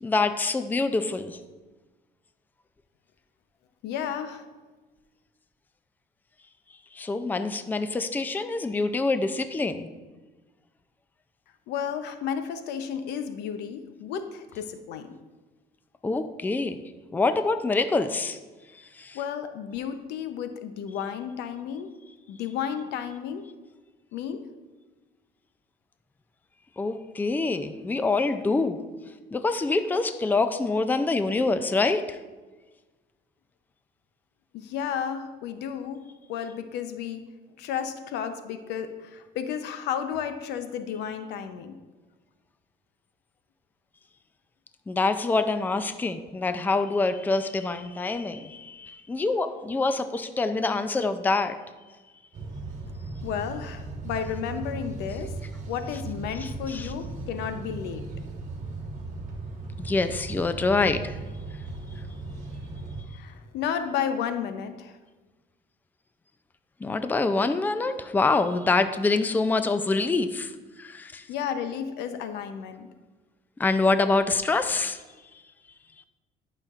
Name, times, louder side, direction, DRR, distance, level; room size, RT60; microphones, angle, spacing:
voice 1, 0.0-1.4 6.9-9.9 16.0-16.8 17.1-18.4 19.0-19.2 26.8-28.8 29.3-32.2 44.9-51.6 56.4-56.9 59.8-61.1 66.8-70.5 70.8-71.2 73.6-75.0, left 3 dB, 10° left, 10 dB, 0.4 m, -25 dB
voice 2, 3.8-4.5 11.7-15.1 19.1-21.9 22.3-23.4 24.1-24.4 34.5-37.2 37.6-41.7 53.2-55.3 55.7-58.0 63.1-65.0 71.3-72.9, left 8 dB, 85° left, 9 dB, 0.7 m, -32 dB
sound 1, 52.3-63.0, right 3 dB, 45° right, 1.4 m, -37 dB
11.5 x 5.8 x 2.4 m, 1.3 s
cardioid pair, 110°, 17 cm